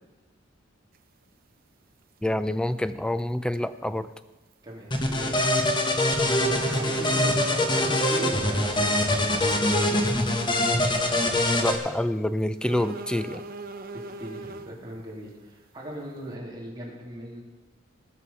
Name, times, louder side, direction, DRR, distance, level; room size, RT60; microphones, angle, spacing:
sound 1, 0.9-1.0 2.6-2.8 3.2-3.3 3.5-3.6 5.5-5.8 6.1-6.2 6.7-7.8 8.9-9.0 9.5-9.6 10.1-10.3 10.7-10.8 12.6-14.8, right 2 dB, 50° right, 0.7 m, -39 dB
voice 1, 2.2-4.1 11.6-13.4, left 1 dB, 5° left, 12 dB, 0.4 m, -27 dB
voice 2, 4.6-5.4 6.2-10.1 13.9-17.4, right 1 dB, 20° right, -4 dB, 3.1 m, -38 dB
sound 2, 4.9-11.8, left 1 dB, 25° left, 1.3 m, -24 dB
18.5 x 6.3 x 5.8 m, 1.1 s
head